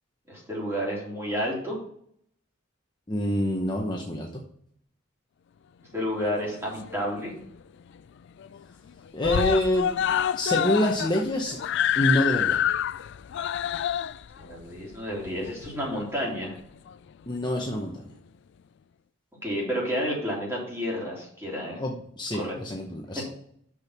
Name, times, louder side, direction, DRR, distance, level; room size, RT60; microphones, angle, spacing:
voice 1, 0.3-1.8 5.9-7.3 14.4-16.5 19.4-21.8 22.3-22.6, equal, 10° right, -4 dB, 3.2 m, -30 dB
voice 2, 3.1-4.4 9.1-11.6 12.0-12.6 17.3-18.1 21.7-23.2, left 1 dB, 20° left, 0 dB, 0.9 m, -27 dB
Screaming, 6.3-7.2 7.6-7.7 8.0-8.1 8.4-8.9 9.2-16.0 16.9-17.0, left 9 dB, 55° left, 0.3 m, -27 dB
6.3 x 6.1 x 5.8 m, 0.65 s
head